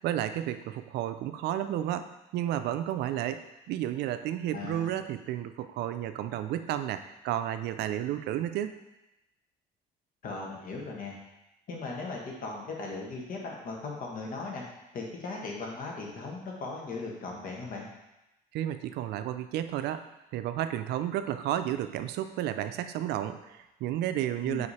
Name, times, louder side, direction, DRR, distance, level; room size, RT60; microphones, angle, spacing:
voice 1, 0.0-2.1 2.3-8.8 18.5-20.0 20.3-24.7, right 12 dB, 75° right, 10 dB, 0.4 m, -32 dB
voice 2, 4.5-5.0 10.2-11.1 11.7-14.6 14.9-17.9 24.4-24.7, left 3 dB, 55° left, -1 dB, 1.5 m, -38 dB
4.9 x 4.6 x 4.2 m, 0.94 s
cardioid pair, 110°, 17 cm